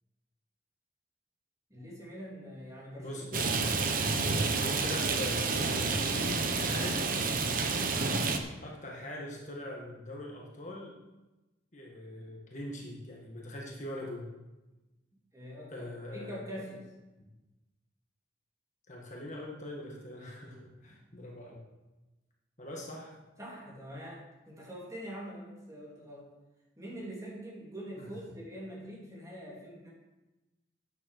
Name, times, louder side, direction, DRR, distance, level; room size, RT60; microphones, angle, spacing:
voice 1, 1.7-3.5 15.3-16.8 20.2-20.7 23.4-26.3 26.8-29.9, equal, 15° right, -5 dB, 3.0 m, -44 dB
voice 2, 3.0-3.5 3.8-7.2 8.6-11.0 11.7-14.3 15.7-16.6 18.9-21.6 22.6-23.2 28.0-28.1, left 1 dB, 40° left, -2 dB, 1.7 m, -42 dB
Rain, 3.3-8.4, right 4 dB, 45° right, 0.9 m, -29 dB
9.6 x 6.9 x 6.6 m, 1.1 s
head